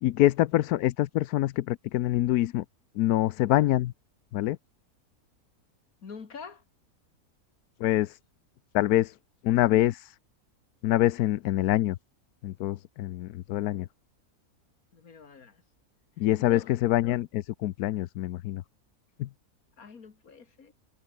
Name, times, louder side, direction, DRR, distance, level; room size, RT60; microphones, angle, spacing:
voice 1, 0.0-2.6 3.0-3.9 4.3-4.6 7.8-8.2 8.7-9.1 9.4-10.1 10.8-12.0 12.4-13.9 16.2-18.6 19.2-19.3, left 14 dB, 85° left, 1.1 m, -25 dB
voice 2, 6.0-6.6 14.9-15.6 16.2-16.7 19.8-20.7, left 5 dB, 65° left, 2.5 m, -45 dB
omnidirectional pair, 1.6 m